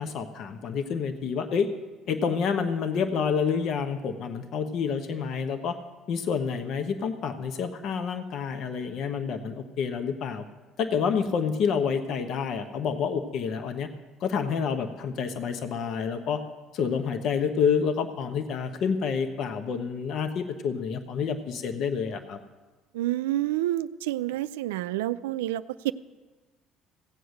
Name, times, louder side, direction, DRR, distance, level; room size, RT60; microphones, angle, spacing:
voice 1, 0.0-1.7 2.1-5.7 6.1-10.4 10.8-13.9 14.2-16.4 16.7-22.4, left 6 dB, 60° left, 8 dB, 1.0 m, -28 dB
voice 2, 22.9-25.9, right 14 dB, 90° right, 13 dB, 0.4 m, -28 dB
16.5 x 7.9 x 6.4 m, 1.3 s
supercardioid pair, 75°, 0 cm